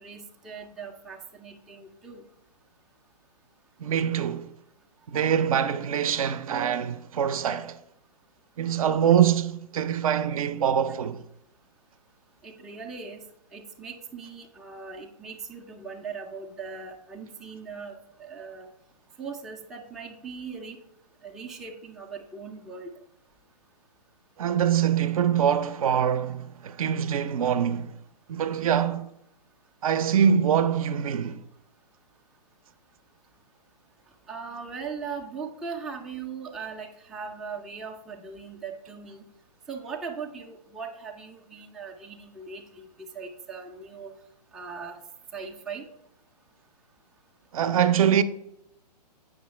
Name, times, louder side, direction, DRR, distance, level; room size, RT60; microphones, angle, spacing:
voice 1, 0.0-2.2 12.4-13.2 13.5-18.7 19.2-20.8 21.2-22.9 34.3-39.3 39.7-42.9 43.1-44.1 44.5-45.0 45.3-45.9, right 5 dB, ahead, 0.4 m, -39 dB
voice 2, 3.8-4.5 5.1-7.8 8.6-11.2 24.4-28.0 28.3-29.1 29.8-31.4 47.5-48.2, right 8 dB, 55° right, 0.5 m, -24 dB
7.8 x 6.0 x 3.1 m
hypercardioid pair, 135°, 21 cm